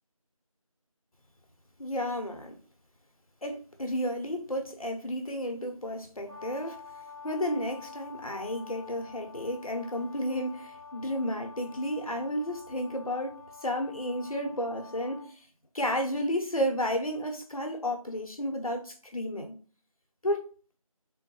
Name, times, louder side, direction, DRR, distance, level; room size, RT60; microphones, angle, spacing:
voice 1, 1.8-2.6 3.4-6.8 7.2-15.5 15.7-19.5 20.2-20.5, equal, 80° left, 0.8 m, -32 dB
Brass instrument, 6.3-15.3, left 5 dB, 40° right, 0.9 m, -48 dB
3.7 x 2.1 x 3.0 m
figure-of-eight pair, 180°, 18 cm